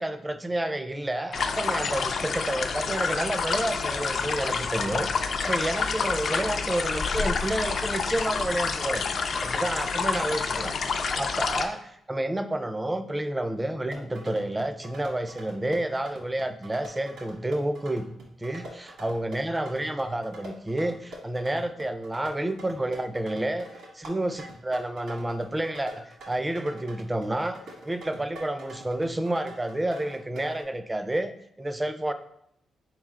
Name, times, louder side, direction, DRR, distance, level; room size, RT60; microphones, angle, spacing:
voice 1, 0.0-9.0 9.4-10.7 11.2-18.1 18.4-32.1, right 1 dB, 15° right, 10 dB, 0.3 m, -30 dB
sound 1, 1.3-11.7, left 5 dB, 60° left, 0.4 m, -28 dB
sound 2, 13.7-30.6, right 1 dB, 85° right, 1.4 m, -45 dB
4.4 x 3.2 x 3.5 m, 0.73 s
cardioid pair, 90°, 0 cm